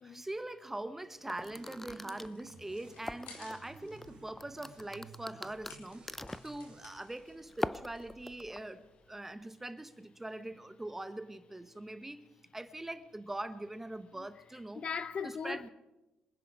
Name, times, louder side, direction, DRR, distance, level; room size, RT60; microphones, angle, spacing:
voice 1, 0.0-6.0 6.4-12.2 12.5-14.8 15.2-15.7, right 1 dB, 10° right, 1.1 m, -42 dB
sound 1, 1.3-9.3, left 4 dB, 80° left, 4.2 m, -59 dB
sound 2, 1.3-3.5 4.0-6.6 7.5-8.6, left 1 dB, 10° left, 0.5 m, -41 dB
sound 3, 1.4-6.9, right 4 dB, 35° right, 1.3 m, -56 dB
voice 2, 14.7-15.7, left 6 dB, 45° left, 0.7 m, -38 dB
26.0 x 10.0 x 4.9 m
cardioid pair, 80°, 3 cm